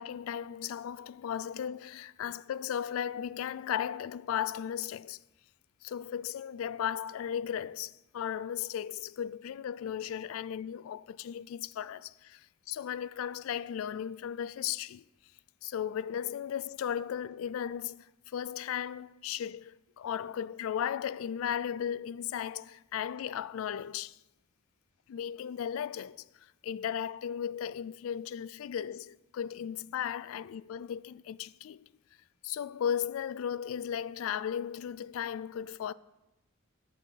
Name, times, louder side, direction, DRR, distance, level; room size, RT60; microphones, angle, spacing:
voice 1, 0.0-5.2 5.8-12.4 12.7-15.0 15.6-18.0 18.3-24.1 25.1-26.2 26.6-31.9 32.4-35.9, left 9 dB, 80° left, 0.3 m, -36 dB
10.0 x 5.4 x 7.6 m
head